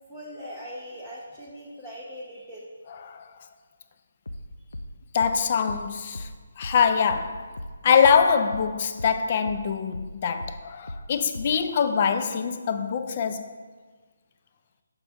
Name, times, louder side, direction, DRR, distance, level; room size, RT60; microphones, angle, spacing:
voice 1, 0.1-2.7, equal, 10° left, 0.7 m, -40 dB
voice 2, 2.9-3.3 5.1-6.3 6.6-7.5 7.8-13.6, left 6 dB, 35° left, 0.4 m, -24 dB
sound 1, 4.3-9.2 9.5-11.7, left 1 dB, 85° left, 0.5 m, -38 dB
7.0 x 5.2 x 3.4 m
hypercardioid pair, 165°, 0 cm